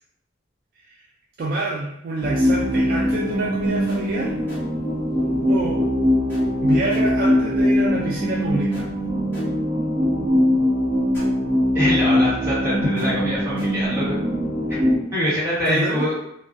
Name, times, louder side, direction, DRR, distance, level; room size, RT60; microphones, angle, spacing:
voice 1, 1.4-4.3 5.5-5.9 6.6-8.9 15.7-16.1, right 2 dB, 50° right, -4 dB, 0.3 m, -27 dB
sound 1, 2.2-15.0, left 1 dB, 10° left, 0.8 m, -21 dB
voice 2, 11.7-14.2 14.7-14.8 15.1-16.1, equal, 15° right, -11 dB, 1.2 m, -24 dB
2.3 x 2.2 x 2.5 m, 0.75 s
head